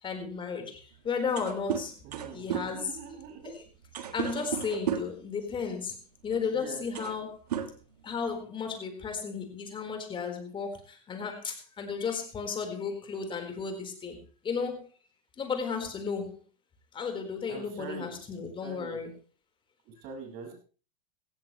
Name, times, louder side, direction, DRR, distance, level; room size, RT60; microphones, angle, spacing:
voice 1, 0.0-1.9 2.3-3.0 3.4-3.6 4.1-7.4 8.0-14.8 15.4-16.4 16.9-19.1, left 5 dB, 25° left, 5 dB, 4.4 m, -34 dB
sound 1, 1.0-1.1 1.2-5.3 6.3-6.4 6.8-7.2 7.5-8.4, right 9 dB, 85° right, 1.7 m, -35 dB
voice 2, 2.0-3.6 6.5-6.8 7.5-7.7 17.5-18.2 18.6-19.0 19.9-20.5, right 5 dB, 50° right, 3 dB, 5.7 m, -43 dB
16.5 x 15.5 x 3.2 m, 0.36 s
hypercardioid pair, 110°, 20 cm